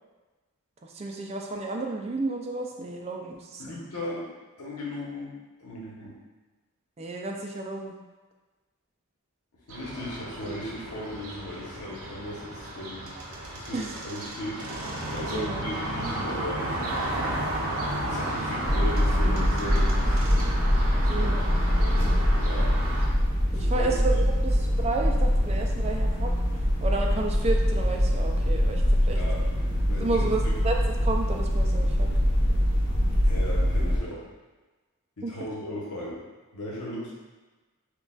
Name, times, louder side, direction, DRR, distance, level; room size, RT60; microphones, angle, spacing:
voice 1, 0.8-3.8 7.0-7.9 13.7-13.9 15.3-15.6 21.1-21.4 23.5-26.3 26.8-29.2 30.0-30.8 31.0-32.1 35.2-35.5, right 3 dB, 30° right, 1 dB, 0.3 m, -31 dB
voice 2, 3.6-4.3 4.6-5.3 5.6-6.1 9.7-13.1 13.5-14.6 15.1-16.8 18.1-20.2 21.1-22.7 23.5-24.2 29.1-30.5 33.2-34.2 35.2-36.2 36.5-37.1, left 1 dB, 90° left, -5 dB, 1.1 m, -37 dB
sound 1, 9.7-23.1, right 1 dB, 70° right, 0.6 m, -33 dB
sound 2, 18.6-34.0, equal, 55° left, 0.8 m, -24 dB
6.2 x 2.3 x 2.4 m, 1.3 s
head